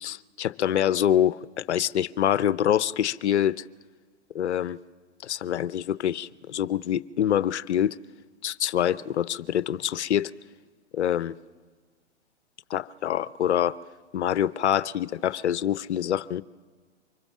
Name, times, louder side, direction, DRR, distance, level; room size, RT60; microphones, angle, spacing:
voice 1, 0.0-3.6 4.3-4.8 5.2-8.0 8.4-10.3 10.9-11.3 12.7-13.8 14.1-16.4, left 10 dB, 65° left, 0.8 m, -25 dB
25.0 x 21.5 x 7.4 m
hypercardioid pair, 120°, 36 cm